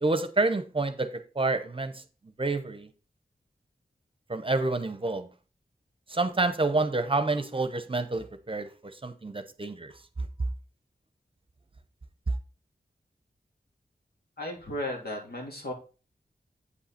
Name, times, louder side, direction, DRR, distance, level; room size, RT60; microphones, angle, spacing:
voice 1, 0.0-1.1 1.4-1.9 2.4-2.9 4.3-5.3 6.1-8.7 9.0-9.9, right 3 dB, 35° right, 0.8 m, -28 dB
voice 2, 14.4-15.7, left 1 dB, 75° left, 2.9 m, -35 dB
8.4 x 5.6 x 4.3 m
wide cardioid pair, 95°, 16 cm